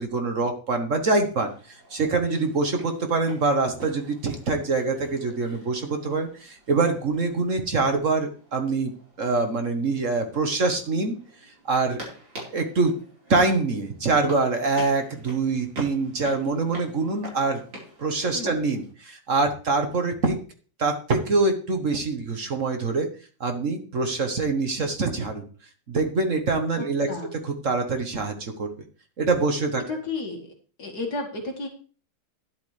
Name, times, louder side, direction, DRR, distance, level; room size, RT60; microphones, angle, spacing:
voice 1, 0.0-8.9 9.2-11.2 11.6-12.0 12.5-12.9 13.3-17.6 18.0-20.4 20.8-23.1 23.4-25.4 25.9-27.1 27.4-28.7 29.2-29.8, right 3 dB, 45° right, 6 dB, 1.4 m, -24 dB
sound 1, 1.5-18.9, right 1 dB, 65° right, 4.9 m, -47 dB
voice 2, 18.3-18.6 26.8-27.3 29.9-30.5 30.8-31.7, left 3 dB, 50° left, 1 dB, 2.4 m, -33 dB
12.5 x 11.0 x 3.3 m, 0.39 s
omnidirectional pair, 2.2 m